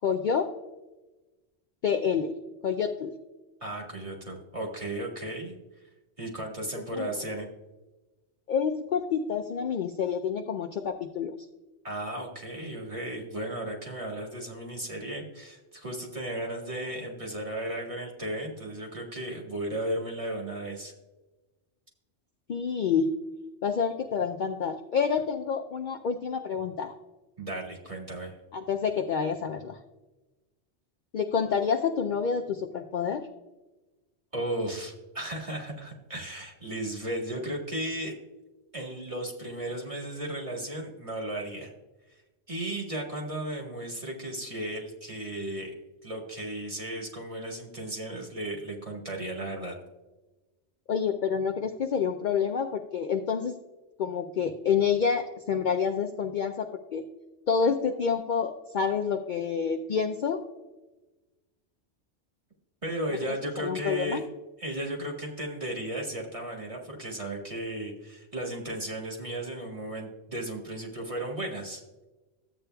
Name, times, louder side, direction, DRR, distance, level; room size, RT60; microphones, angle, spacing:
voice 1, 0.0-0.5 1.8-2.4 2.6-3.1 6.9-7.1 8.5-11.3 22.5-23.2 23.6-26.9 28.5-29.8 31.1-33.2 50.9-53.6 54.0-57.0 57.5-60.4 63.3-64.2, left 6 dB, 60° left, 5 dB, 0.5 m, -28 dB
voice 2, 3.6-5.6 6.2-7.5 11.8-20.9 27.4-28.3 34.3-38.1 38.7-41.7 42.5-45.7 46.0-49.7 62.8-64.2 64.6-71.8, right 1 dB, 30° right, -1 dB, 1.6 m, -35 dB
13.5 x 8.3 x 2.2 m, 1.1 s
omnidirectional pair, 1.2 m